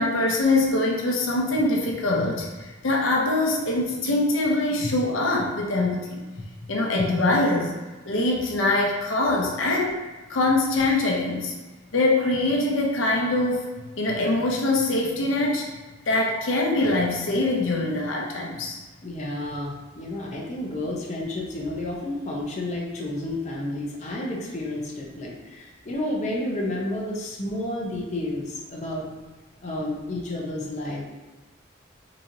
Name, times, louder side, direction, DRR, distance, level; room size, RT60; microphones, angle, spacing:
voice 1, 0.0-6.2 6.7-7.8 8.0-9.9 10.3-11.5 11.9-13.6 14.0-15.7 16.1-18.8, left 2 dB, 85° left, -1 dB, 0.7 m, -23 dB
voice 2, 19.0-29.0 29.6-31.0, left 1 dB, 35° left, -3 dB, 0.6 m, -31 dB
3.8 x 3.0 x 2.7 m, 1.2 s
head